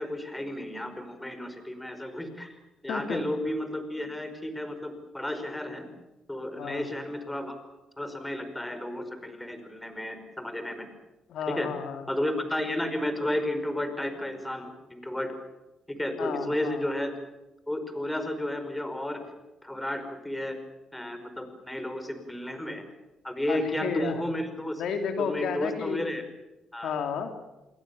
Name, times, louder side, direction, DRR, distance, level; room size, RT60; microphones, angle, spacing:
voice 1, 0.0-2.6 2.8-5.9 6.3-7.6 8.0-10.9 11.5-11.7 12.1-15.4 15.9-17.1 17.7-19.2 19.6-20.6 20.9-22.8 23.2-24.8 25.2-26.2 26.7-27.0, left 1 dB, 10° left, 8 dB, 5.2 m, -32 dB
voice 2, 2.9-3.2 6.6-6.8 11.3-12.0 16.2-16.8 23.5-24.1 24.8-26.0 26.8-27.3, left 6 dB, 75° left, 6 dB, 3.2 m, -32 dB
28.5 x 21.0 x 7.1 m, 1.0 s
cardioid pair, 90°, 0 cm